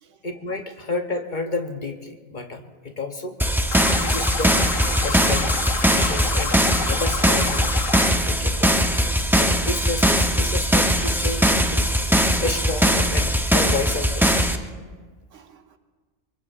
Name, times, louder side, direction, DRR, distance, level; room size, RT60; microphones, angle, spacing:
voice 1, 0.2-3.4 4.0-4.6 5.0-5.6 5.9-6.6 6.9-7.7 8.2-8.9 9.3-14.5, left 3 dB, 40° left, 5 dB, 0.9 m, -31 dB
sound 1, 3.4-14.6, equal, 5° right, 0.4 m, -20 dB
voice 2, 3.4-3.9 5.2-5.4 11.6-11.7 15.3-15.8, right 2 dB, 70° right, 7 dB, 1.2 m, -46 dB
sound 2, 3.7-8.1, left 6 dB, 85° left, 1.5 m, -30 dB
24.5 x 22.5 x 2.5 m, 1.5 s
omnidirectional pair, 1.4 m